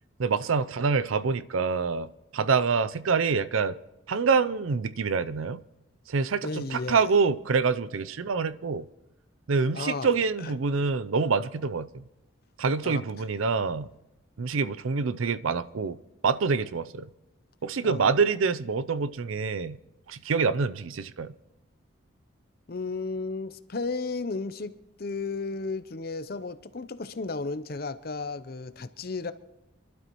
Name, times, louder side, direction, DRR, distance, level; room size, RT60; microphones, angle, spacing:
voice 1, 0.2-3.8 4.1-5.6 6.1-8.9 9.5-12.0 12.6-13.9 14.4-16.0 16.2-17.1 17.6-19.8 20.1-21.3, right 5 dB, 85° right, 0.5 m, -26 dB
voice 2, 6.4-7.1 9.7-10.1 10.4-10.9 12.8-13.0 17.8-18.1 22.7-29.3, left 3 dB, 45° left, 0.6 m, -34 dB
27.0 x 12.0 x 3.1 m
head